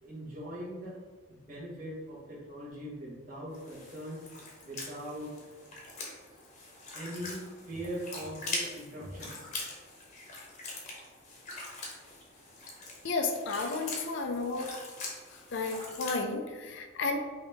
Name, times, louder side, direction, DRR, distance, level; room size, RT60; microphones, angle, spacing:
voice 1, 0.0-1.0 1.3-4.2 4.6-5.3 6.9-9.5, equal, 40° right, -6 dB, 1.4 m, -41 dB
sound 1, 3.5-16.2, left 2 dB, 35° left, 1.0 m, -43 dB
voice 2, 13.0-14.7 15.3-17.2, left 3 dB, 60° left, 5 dB, 0.4 m, -32 dB
5.6 x 2.8 x 3.4 m, 1.4 s
head